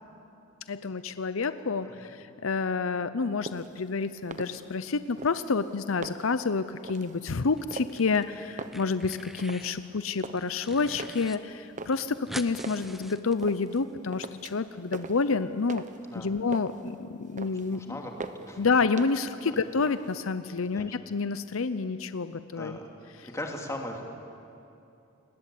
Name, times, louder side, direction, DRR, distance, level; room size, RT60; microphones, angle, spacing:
voice 1, 0.7-15.8 16.1-18.0 18.6-22.8, left 4 dB, 75° left, 12 dB, 0.7 m, -29 dB
voice 2, 1.8-2.1 8.6-8.8 16.0-16.3 17.4-18.7 19.4-19.6 20.6-20.9 22.5-22.8 23.2-24.0, left 1 dB, 15° left, 1 dB, 2.8 m, -39 dB
sound 1, 3.4-3.8 4.2-4.9 5.2-6.4 6.8-7.2 7.7-8.2 8.5-9.8 10.0-10.6 11.0-12.9 13.4-13.8 14.1-14.7 14.9-16.1 16.4-16.9 17.2-17.8 18.2-18.6 19.0-19.4 19.7-20.3, right 3 dB, 40° right, 1.1 m, -42 dB
sound 2, 7.6-8.3 8.5-9.8 10.2-11.4 11.6-11.7 11.9-13.8, equal, ahead, 0.8 m, -44 dB
29.0 x 20.5 x 8.6 m, 2.7 s
head